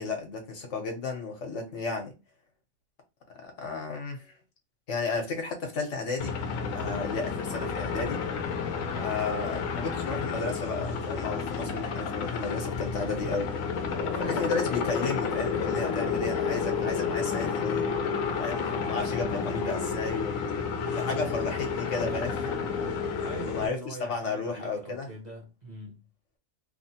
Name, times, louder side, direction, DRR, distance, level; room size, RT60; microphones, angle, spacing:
voice 1, 0.0-2.1 3.3-4.3 4.9-6.4 6.7-8.2 9.0-13.5 14.2-17.9 18.4-20.3 21.0-22.6 23.5-25.1, left 4 dB, 65° left, 1.1 m, -33 dB
sound 1, 6.2-23.7, left 5 dB, 85° left, 1.0 m, -31 dB
voice 2, 8.9-9.2 14.0-14.4 23.2-26.0, right 1 dB, 35° right, 0.8 m, -42 dB
3.1 x 2.1 x 2.7 m
omnidirectional pair, 1.4 m